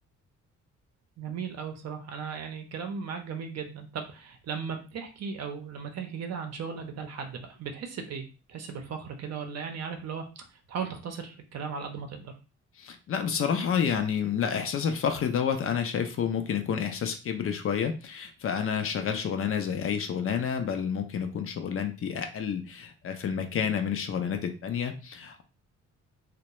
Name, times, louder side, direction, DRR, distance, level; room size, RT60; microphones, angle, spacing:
voice 1, 1.2-10.2 10.7-12.3, right 6 dB, 60° right, 5 dB, 0.6 m, -37 dB
voice 2, 12.8-25.4, left 7 dB, 45° left, 6 dB, 0.5 m, -29 dB
2.3 x 2.1 x 2.9 m, 0.34 s
cardioid pair, 90°, 30 cm